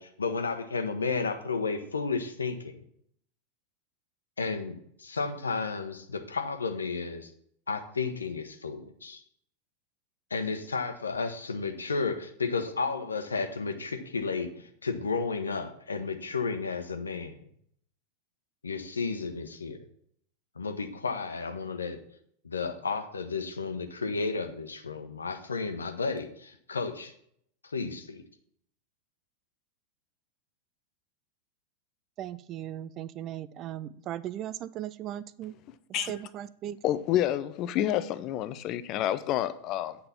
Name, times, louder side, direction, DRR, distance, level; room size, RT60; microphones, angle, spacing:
voice 1, 0.0-2.7 4.4-7.3 7.7-9.2 10.3-17.4 18.6-19.8 20.6-22.0 22.4-27.1 27.7-28.2, left 4 dB, 75° left, 1.0 m, -32 dB
voice 2, 32.2-35.6 35.9-36.8, right 12 dB, 35° right, 0.4 m, -37 dB
voice 3, 36.8-40.0, left 12 dB, 40° left, 0.6 m, -28 dB
8.7 x 5.4 x 5.8 m
figure-of-eight pair, 90°, 0 cm